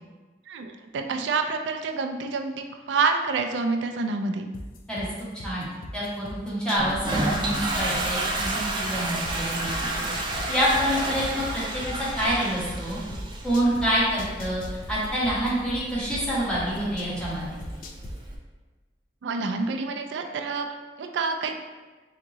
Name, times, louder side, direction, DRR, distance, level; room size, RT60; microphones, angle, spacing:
voice 1, 0.5-4.4 19.2-20.7 21.0-21.6, right 4 dB, 90° right, 5 dB, 0.3 m, -27 dB
sound 1, 4.5-7.0 7.3-10.4 10.7-13.8 14.2-17.3 17.6-18.1, left 2 dB, 50° left, 0.4 m, -39 dB
voice 2, 5.9-10.0 10.5-13.0 13.4-14.6 14.9-17.5, equal, 5° left, -9 dB, 1.3 m, -27 dB
Toilet flush, 6.8-18.3, right 2 dB, 25° right, 0.5 m, -32 dB
3.5 x 2.9 x 3.9 m, 1.3 s
head